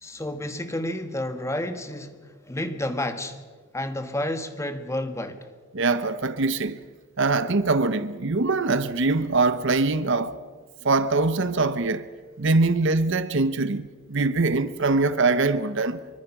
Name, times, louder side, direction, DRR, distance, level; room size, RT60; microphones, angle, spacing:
voice 1, 0.0-3.4 3.7-5.5, left 1 dB, 15° left, 1.4 m, -30 dB
voice 2, 5.7-6.8 7.2-10.3 10.8-12.1 12.4-16.0, right 3 dB, 55° right, 0.9 m, -23 dB
25.0 x 24.5 x 6.0 m
head